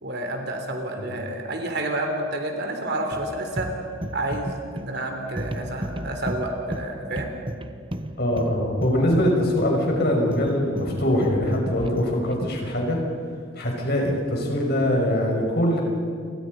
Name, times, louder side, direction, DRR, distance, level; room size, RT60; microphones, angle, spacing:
voice 1, 0.0-3.7 4.1-7.3, right 1 dB, 55° right, 3 dB, 3.6 m, -29 dB
sound 1, 3.1-12.7, right 1 dB, 25° right, 1.0 m, -34 dB
voice 2, 8.2-13.0 13.6-15.8, left 1 dB, 50° left, 0 dB, 6.2 m, -23 dB
30.0 x 24.5 x 5.4 m, 2.4 s
head